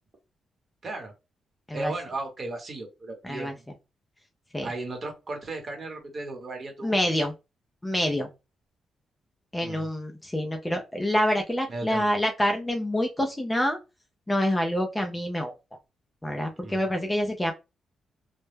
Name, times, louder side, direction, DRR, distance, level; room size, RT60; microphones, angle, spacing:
voice 1, 1.7-3.6 4.6-6.9 9.6-9.9 11.7-12.1 16.6-16.8, right 2 dB, 35° right, 2 dB, 0.9 m, -35 dB
voice 2, 3.2-3.5 4.5-4.7 6.8-7.3 7.8-8.3 9.5-13.8 14.3-15.5 16.2-17.5, equal, 10° left, 4 dB, 0.4 m, -26 dB
2.1 x 2.0 x 3.2 m, 0.26 s
cardioid pair, 115°, 0 cm